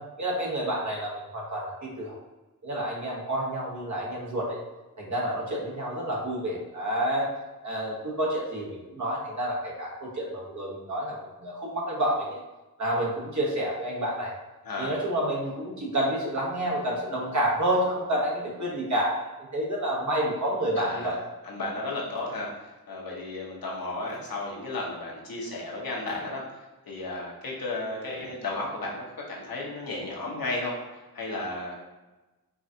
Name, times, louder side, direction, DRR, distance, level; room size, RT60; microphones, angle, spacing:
voice 1, 0.2-2.1 2.6-4.6 5.0-7.3 7.6-12.4 12.8-14.3 14.8-21.2, right 1 dB, 50° right, -3 dB, 1.1 m, -29 dB
voice 2, 14.6-15.0 20.7-21.2 21.4-22.5 22.9-26.4 26.9-30.8 31.1-31.7, left 2 dB, 75° left, -3 dB, 1.0 m, -33 dB
4.6 x 2.4 x 2.7 m, 1.1 s
wide cardioid pair, 65°, 36 cm